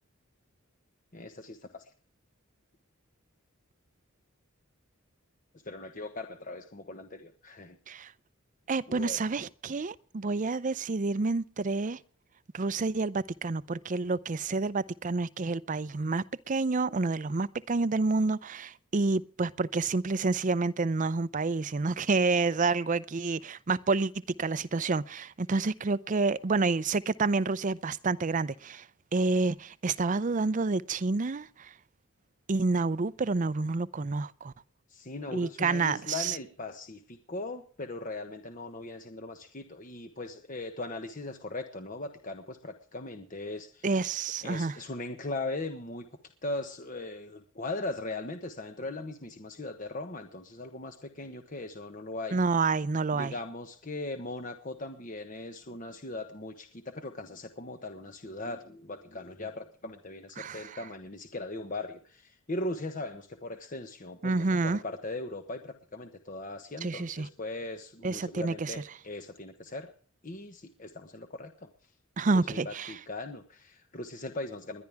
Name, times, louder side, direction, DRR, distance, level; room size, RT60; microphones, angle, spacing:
voice 1, 1.1-1.9 5.6-7.8 8.9-9.2 34.9-43.9 44.4-46.1 46.4-52.4 53.1-69.9 70.2-71.7 72.3-74.8, left 2 dB, 40° left, 1.2 m, -39 dB
voice 2, 8.7-12.0 12.5-24.1 24.4-28.8 29.1-31.7 32.5-34.5 35.3-36.4 43.8-44.7 52.3-53.3 60.4-60.8 64.2-64.8 66.8-67.3 68.0-68.7 72.2-73.0, right 3 dB, 35° right, 0.5 m, -29 dB
21.0 x 11.0 x 3.5 m
head